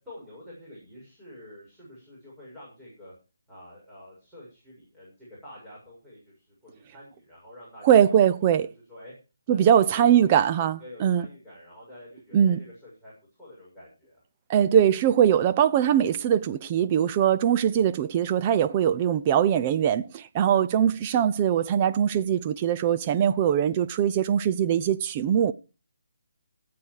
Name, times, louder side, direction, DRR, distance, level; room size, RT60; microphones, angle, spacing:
voice 1, 0.0-3.1 3.5-8.3 8.6-9.1 9.5-10.3 10.8-13.1 13.4-14.2, left 1 dB, 5° right, 6.8 m, -48 dB
voice 2, 7.8-8.7 9.5-11.2 12.3-12.6 14.5-25.5, right 9 dB, 25° right, 0.6 m, -21 dB
16.5 x 8.6 x 4.7 m
hypercardioid pair, 165°, 0 cm